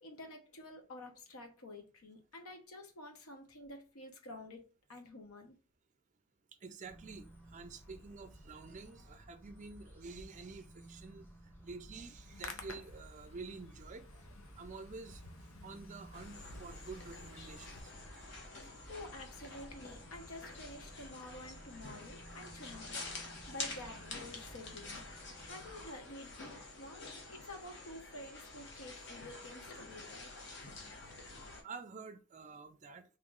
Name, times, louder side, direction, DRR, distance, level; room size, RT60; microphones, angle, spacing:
voice 1, 0.0-4.6 4.9-5.6 18.9-23.0 23.5-30.3, left 1 dB, 85° left, 0.9 m, -50 dB
voice 2, 6.6-11.3 11.6-14.2 14.6-15.2 15.6-17.9 31.5-33.0, right 4 dB, 35° right, 0.4 m, -49 dB
sound 1, 6.8-25.9, right 1 dB, 10° left, 0.9 m, -56 dB
Hands, 12.1-17.8, left 4 dB, 70° left, 0.6 m, -53 dB
sound 2, 16.1-31.6, left 3 dB, 55° left, 1.0 m, -48 dB
3.0 x 2.9 x 3.6 m
head